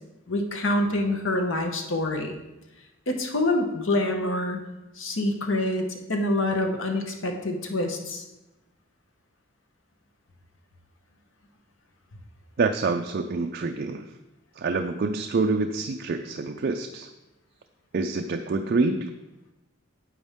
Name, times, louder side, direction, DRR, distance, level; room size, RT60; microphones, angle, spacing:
voice 1, 0.3-2.3 3.1-4.6 5.0-8.2, left 1 dB, 80° left, 4 dB, 1.1 m, -26 dB
voice 2, 12.6-14.1 14.6-17.1 17.9-19.1, right 3 dB, 50° right, 5 dB, 0.4 m, -26 dB
9.4 x 7.9 x 3.6 m, 1.0 s
head